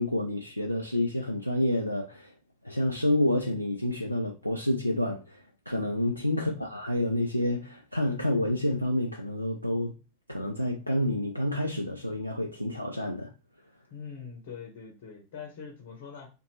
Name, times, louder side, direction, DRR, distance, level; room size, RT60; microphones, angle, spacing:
voice 1, 0.0-2.3 2.6-9.9 10.3-13.3, left 1 dB, 90° left, 0.4 m, -29 dB
voice 2, 13.9-16.3, left 6 dB, 50° left, 0.9 m, -43 dB
2.6 x 2.5 x 3.0 m
figure-of-eight pair, 90°, 0 cm